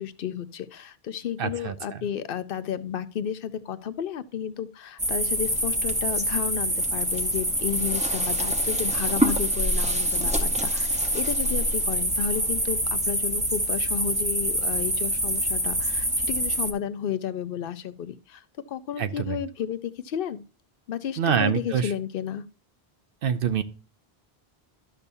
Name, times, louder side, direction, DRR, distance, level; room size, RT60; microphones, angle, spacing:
voice 1, 0.0-20.4 20.9-22.4, left 9 dB, 65° left, 13 dB, 0.8 m, -32 dB
voice 2, 1.4-2.0 19.0-19.4 21.2-21.9 23.2-23.6, right 7 dB, 70° right, 11 dB, 0.8 m, -26 dB
sound 1, 5.0-16.7, equal, 5° right, 0.8 m, -25 dB
12.0 x 6.8 x 2.7 m, 0.36 s
omnidirectional pair, 1.0 m